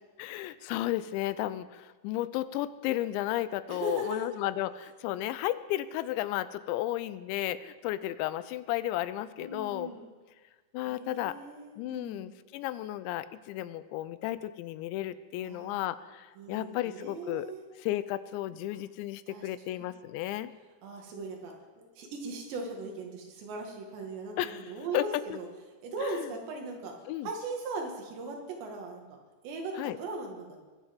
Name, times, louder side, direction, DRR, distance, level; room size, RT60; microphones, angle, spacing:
voice 1, 0.2-10.0 10.7-11.4 11.8-17.5 17.8-20.5 24.4-25.4 26.0-26.3 27.1-27.3 29.8-30.0, left 14 dB, 85° left, 15 dB, 2.9 m, -33 dB
voice 2, 3.7-4.3 9.4-10.1 10.9-12.3 15.4-15.8 16.4-17.6 19.3-19.5 19.8-19.9 20.8-25.5 25.8-26.9 27.2-29.0 29.4-30.5, right 3 dB, 75° right, 1 dB, 4.2 m, -39 dB
21.0 x 10.0 x 5.3 m, 1.3 s
omnidirectional pair, 5.2 m